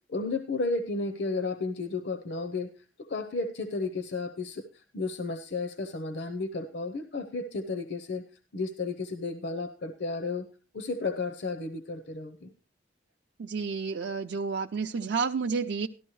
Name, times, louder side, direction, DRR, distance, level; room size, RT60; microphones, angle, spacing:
voice 1, 0.1-2.7 3.0-8.2 8.5-10.5 10.7-12.5, left 3 dB, 70° left, 9 dB, 0.7 m, -33 dB
voice 2, 13.4-15.9, right 5 dB, 75° right, 3 dB, 0.5 m, -30 dB
13.5 x 11.5 x 3.1 m, 0.33 s
head